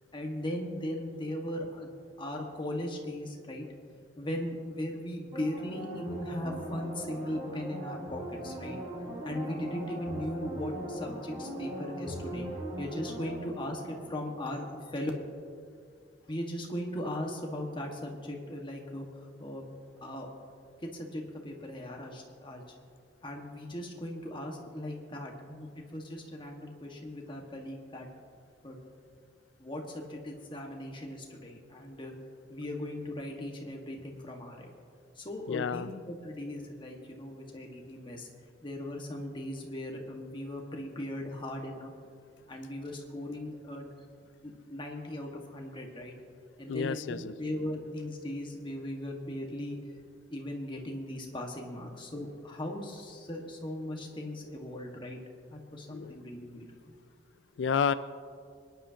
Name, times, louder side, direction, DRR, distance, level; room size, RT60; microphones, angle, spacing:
voice 1, 0.1-3.7 4.2-8.8 9.2-15.1 16.3-19.6 20.0-20.3 20.9-22.6 23.2-28.1 28.6-28.8 29.6-32.1 32.5-34.7 35.1-38.3 38.6-41.9 42.5-43.8 44.4-46.2 46.6-49.8 50.3-55.2 55.5-56.7, left 1 dB, 30° left, 1 dB, 1.6 m, -38 dB
sound 1, 5.3-14.7 15.1-15.2, right 1 dB, 25° right, 3.7 m, -40 dB
voice 2, 35.5-35.9 46.7-47.3 55.9-56.2 57.6-57.9, left 6 dB, 90° left, 13 dB, 0.4 m, -30 dB
26.5 x 10.5 x 2.8 m, 2.2 s
head